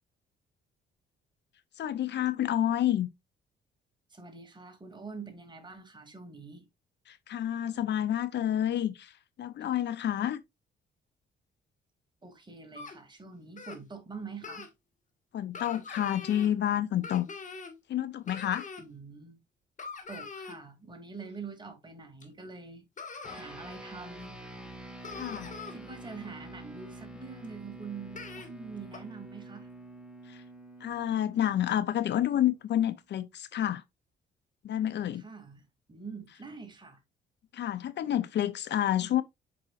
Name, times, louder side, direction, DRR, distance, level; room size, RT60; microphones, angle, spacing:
voice 1, 1.8-3.1 7.1-10.4 15.3-17.3 17.9-18.7 25.2-25.6 30.3-30.4 30.8-33.8 34.6-35.2 37.5-39.2, left 11 dB, 60° left, 0.6 m, -29 dB
voice 2, 4.1-6.7 12.2-14.7 18.8-19.4 20.1-22.8 23.3-24.3 25.7-29.7 35.1-37.0, right 4 dB, 20° right, 2.4 m, -45 dB
sound 1, 12.8-13.0 13.6-13.8 14.4-14.7 15.5-16.5 17.0-17.8 18.3-18.8 19.8-20.6 22.2-22.3 23.0-23.4 24.2-24.3 24.7-24.8 25.0-25.7 27.4-27.5 28.1-28.5 28.9-29.0, left 4 dB, 40° left, 1.8 m, -43 dB
sound 2, 23.2-32.9, right 1 dB, 5° right, 1.7 m, -47 dB
7.6 x 5.4 x 2.4 m
cardioid pair, 90°, 20 cm